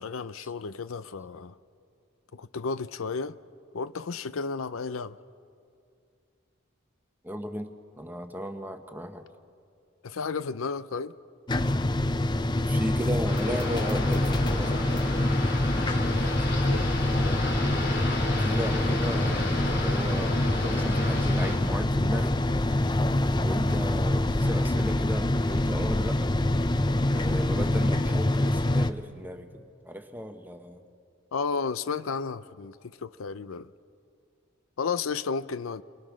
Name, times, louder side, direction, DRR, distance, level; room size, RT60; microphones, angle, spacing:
voice 1, 0.0-1.5 2.3-3.4 3.7-5.2 10.0-11.1 16.0-16.9 31.3-32.8 33.0-33.7 34.8-35.8, left 5 dB, 80° left, 0.6 m, -33 dB
voice 2, 7.2-9.2 12.6-14.8 18.1-22.9 23.3-26.3 27.1-30.8, equal, 10° right, 1.1 m, -36 dB
sound 1, 11.5-28.9, left 1 dB, 20° left, 0.5 m, -25 dB
sound 2, 13.3-21.6, left 2 dB, 55° left, 3.2 m, -33 dB
28.5 x 23.0 x 6.3 m
head